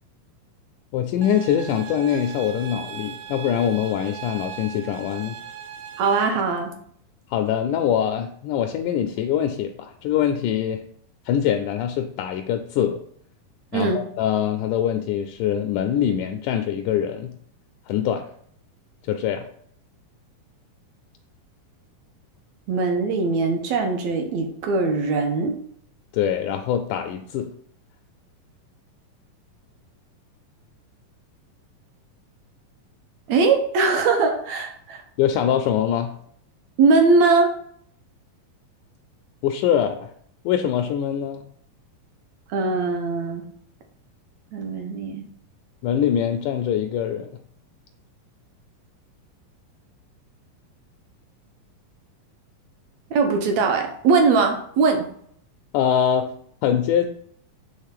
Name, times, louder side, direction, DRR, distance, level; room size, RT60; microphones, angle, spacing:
voice 1, 0.9-5.4 7.3-10.8 11.3-13.0 13.7-17.4 17.9-18.3 19.0-19.5 26.1-27.5 35.2-36.2 39.4-40.1 40.5-41.4 45.8-47.3 55.7-56.3 56.6-57.1, left 9 dB, 85° left, 6 dB, 1.8 m, -23 dB
sound 1, 1.2-6.3, right 9 dB, 85° right, 2.5 m, -38 dB
voice 2, 6.0-6.7 13.7-14.0 22.7-25.5 33.3-35.0 36.8-37.5 42.5-43.4 44.5-45.3 53.1-55.1, right 4 dB, 70° right, 4 dB, 1.7 m, -21 dB
6.5 x 3.5 x 5.7 m, 0.63 s
omnidirectional pair, 4.0 m